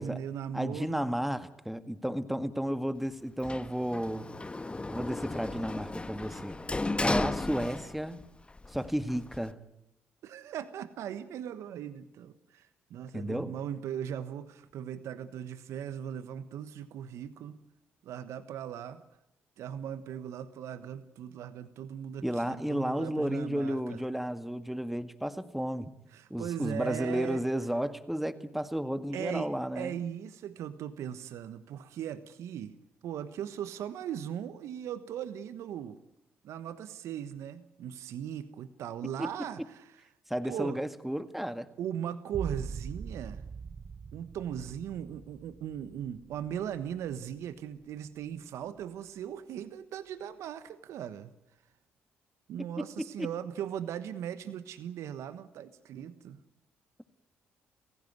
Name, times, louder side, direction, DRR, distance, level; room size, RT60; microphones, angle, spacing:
voice 1, 0.0-1.0 10.2-17.6 18.0-19.0 19.6-24.0 26.1-27.4 29.1-29.5 29.7-32.8 33.0-36.0 36.4-40.0 40.4-40.8 41.8-43.4 44.1-51.3 52.5-56.4, right 9 dB, 70° right, 13 dB, 1.3 m, -38 dB
voice 2, 0.5-4.3 4.9-6.6 7.0-8.2 8.7-9.6 13.1-13.5 22.2-25.9 26.3-30.0 39.2-39.3 40.3-41.7 53.2-53.3, equal, 5° right, 11 dB, 1.9 m, -33 dB
Sliding door, 3.4-8.2 8.6-9.5, left 2 dB, 20° left, 1.3 m, -34 dB
sound 1, 42.3-47.8 48.2-48.8, right 5 dB, 40° right, 0.9 m, -43 dB
30.0 x 16.0 x 9.5 m, 0.85 s
supercardioid pair, 55°, 5 cm